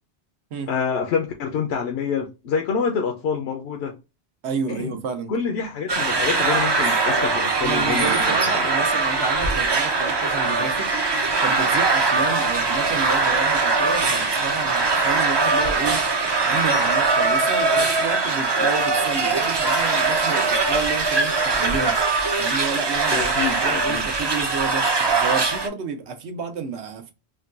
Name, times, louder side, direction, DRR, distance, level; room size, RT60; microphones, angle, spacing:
voice 1, 0.7-4.0 4.7-5.0 5.3-8.7 23.1-24.1, left 6 dB, 75° left, 0.8 m, -27 dB
voice 2, 4.4-5.3 7.6-10.9 11.4-16.0 16.4-22.0 22.4-27.1, right 5 dB, 85° right, 1.0 m, -30 dB
sound 1, 5.9-25.7, right 3 dB, 40° right, 0.4 m, -21 dB
3.7 x 2.2 x 2.4 m
omnidirectional pair, 1.1 m